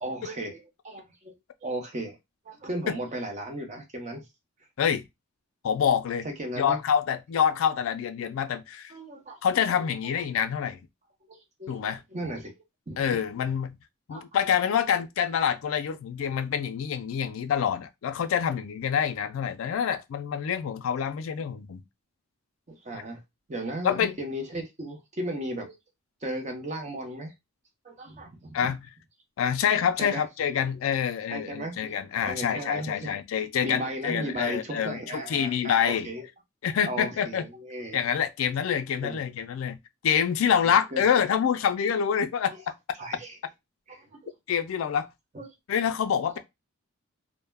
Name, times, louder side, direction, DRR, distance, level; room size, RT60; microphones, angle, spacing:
voice 1, 0.0-1.3 1.6-2.2 2.5-4.2 6.2-6.8 8.9-9.6 11.3-13.0 14.1-14.4 22.7-23.2 23.5-25.7 26.2-27.3 27.8-28.7 30.0-30.2 31.3-31.8 32.2-33.2 33.6-36.3 36.8-38.0 39.0-39.2 40.9-41.0 42.5-42.6 43.0-43.4 43.9-44.2 45.3-45.5 46.2-46.4, right 1 dB, 35° right, 0.6 m, -36 dB
voice 2, 5.6-6.3 6.6-8.9 9.4-10.8 11.7-12.0 13.0-13.8 14.1-21.8 23.8-24.1 28.5-28.9 29.4-36.1 36.6-37.4 37.9-42.5 44.5-45.1 45.7-46.4, left 8 dB, 75° left, 0.3 m, -26 dB
2.2 x 2.0 x 3.2 m
head